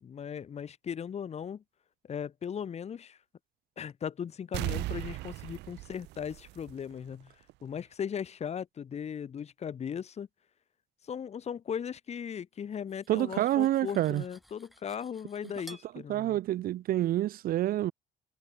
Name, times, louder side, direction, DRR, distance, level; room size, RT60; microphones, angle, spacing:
voice 1, 0.0-1.6 2.0-3.2 3.8-7.4 7.6-10.3 11.0-16.4, left 8 dB, 40° left, 1.7 m, -38 dB
sound 1, 4.5-7.1 7.5-7.6, right 19 dB, 85° right, 2.7 m, -37 dB
Cutlery silverware, 12.7-15.9, equal, ahead, 3.2 m, -54 dB
voice 2, 13.1-14.2 16.1-17.9, right 13 dB, 60° right, 0.6 m, -28 dB
cardioid pair, 110°, 17 cm